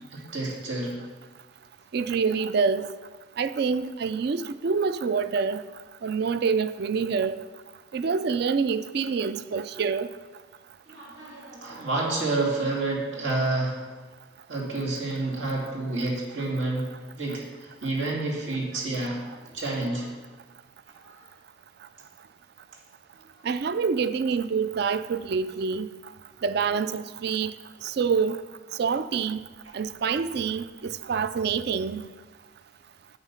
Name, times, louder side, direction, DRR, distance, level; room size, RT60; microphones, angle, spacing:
voice 1, 0.1-1.0 10.9-13.9 14.5-19.2 19.5-20.1 21.0-21.3, right 2 dB, 80° right, 2.8 m, -29 dB
voice 2, 1.9-2.9 3.4-5.6 6.0-7.4 7.9-10.1 23.4-25.9 26.4-27.5 27.8-28.4 28.8-29.4 29.7-32.1, right 5 dB, 55° right, 0.4 m, -26 dB
9.4 x 8.0 x 5.7 m
head